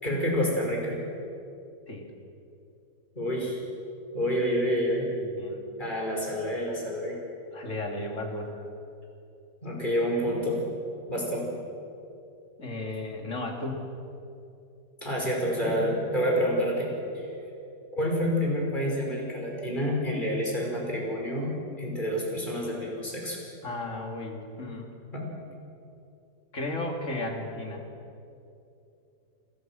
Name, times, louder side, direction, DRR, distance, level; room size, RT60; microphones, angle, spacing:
voice 1, 0.0-1.0 3.2-3.6 4.1-5.1 5.8-7.2 9.6-10.6 11.1-11.5 15.0-17.3 17.9-23.4 25.1-25.3, equal, 30° left, -1 dB, 5.6 m, -28 dB
voice 2, 5.2-5.6 7.5-8.5 12.6-13.8 15.6-16.0 23.6-24.9 26.5-27.8, left 2 dB, 50° left, 2 dB, 3.3 m, -34 dB
29.0 x 21.0 x 6.3 m, 2.7 s
omnidirectional pair, 1.7 m